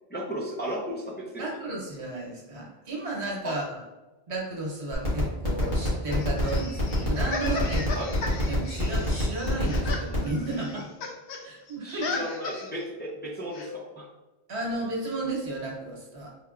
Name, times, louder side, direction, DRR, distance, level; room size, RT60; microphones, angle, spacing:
voice 1, 0.1-1.4 3.4-3.6 7.9-8.1 11.8-14.1, equal, 10° left, -4 dB, 0.6 m, -35 dB
voice 2, 1.4-3.8 4.3-8.1 8.5-10.9 11.4-12.2 14.5-16.3, right 2 dB, 85° right, -2 dB, 1.4 m, -33 dB
sound 1, 4.9-10.3, equal, 45° left, 1.8 m, -28 dB
sound 2, 5.6-11.4 11.7-12.8 13.5-13.7, left 3 dB, 90° left, 1.0 m, -36 dB
4.7 x 3.4 x 2.4 m, 1.1 s
omnidirectional pair, 1.1 m